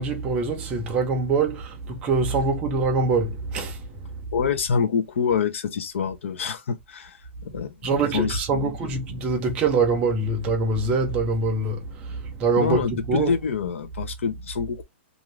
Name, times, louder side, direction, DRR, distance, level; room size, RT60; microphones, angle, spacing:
voice 1, 0.0-4.1 7.8-13.3, right 3 dB, 15° right, 0.6 m, -24 dB
voice 2, 4.3-8.7 12.6-14.8, left 6 dB, 70° left, 0.7 m, -26 dB
2.6 x 2.5 x 3.1 m
hypercardioid pair, 175°, 7 cm